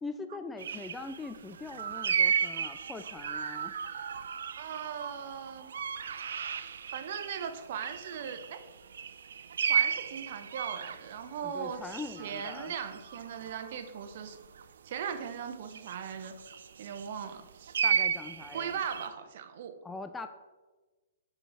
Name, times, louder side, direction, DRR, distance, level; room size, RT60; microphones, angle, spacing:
voice 1, 0.0-3.7 11.4-12.7 17.8-18.8 19.8-20.3, left 3 dB, 10° left, 9 dB, 0.4 m, -42 dB
sound 1, 0.6-7.5 7.8-14.6 15.7-17.2 17.7-19.1, right 7 dB, 75° right, 0.5 m, -34 dB
voice 2, 4.5-5.7 6.9-8.6 9.6-14.4 14.8-16.3 16.8-17.8 18.5-19.8, right 7 dB, 55° right, 9 dB, 0.8 m, -39 dB
6.8 x 5.6 x 4.7 m, 1.2 s
hypercardioid pair, 135°, 0 cm